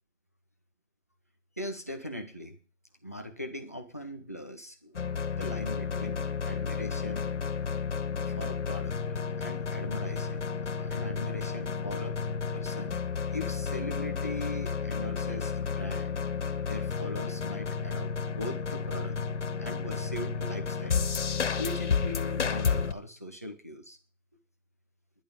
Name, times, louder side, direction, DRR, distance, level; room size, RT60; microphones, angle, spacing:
voice 1, 1.6-2.6 3.0-5.1 5.4-7.3 8.3-9.0 9.4-12.2 12.5-12.9 13.3-16.2 16.7-19.2 19.6-24.0, left 1 dB, 15° left, 8 dB, 0.6 m, -40 dB
sound 1, 4.9-22.9, left 6 dB, 70° left, 1.9 m, -32 dB
10.5 x 9.0 x 9.9 m, 0.38 s
hypercardioid pair, 180°, 36 cm